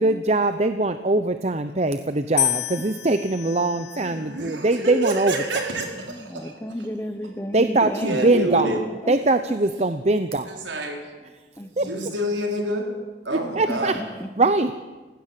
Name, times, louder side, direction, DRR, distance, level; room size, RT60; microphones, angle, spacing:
voice 1, 0.0-5.3 7.5-8.8 9.1-10.6 11.8-11.9 13.6-13.9 14.4-14.7, right 2 dB, 35° right, 10 dB, 0.8 m, -22 dB
sound 1, 2.4-4.6 5.4-5.9, left 16 dB, 75° left, 0.7 m, -30 dB
voice 2, 4.0-6.5 8.0-8.8 10.5-11.1 11.8-12.9 13.2-14.0, right 1 dB, 90° right, 2 dB, 4.9 m, -28 dB
voice 3, 6.1-8.7 9.0-9.2 11.6-12.1 13.3-14.3, equal, 15° left, 10 dB, 1.0 m, -33 dB
28.5 x 16.5 x 7.6 m, 1.3 s
head